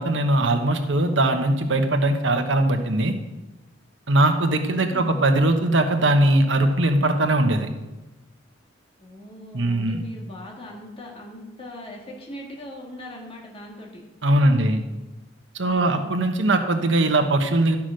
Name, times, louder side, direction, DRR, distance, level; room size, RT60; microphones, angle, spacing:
voice 1, 0.0-3.1 4.1-7.7 9.5-10.0 14.2-14.8 15.5-17.8, right 1 dB, 75° right, 6 dB, 1.2 m, -20 dB
voice 2, 4.8-5.2 9.0-14.0 14.4-14.9 15.6-16.1, left 1 dB, 30° left, -1 dB, 1.9 m, -40 dB
12.0 x 6.0 x 6.4 m, 1.1 s
head